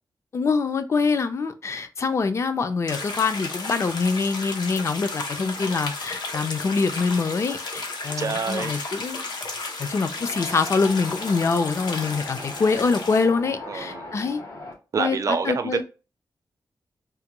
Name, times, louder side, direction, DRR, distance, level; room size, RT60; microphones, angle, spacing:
voice 1, 0.3-9.2 9.8-14.4 15.0-15.8, left 4 dB, 40° left, 0.4 m, -25 dB
sound 1, 2.9-13.3, left 3 dB, 85° left, 0.7 m, -33 dB
voice 2, 8.2-8.7 13.6-14.1 14.9-15.8, right 5 dB, 50° right, 0.4 m, -27 dB
Wind, 10.2-14.7, left 2 dB, 65° left, 1.5 m, -39 dB
3.4 x 2.2 x 2.9 m
wide cardioid pair, 180°, 7 cm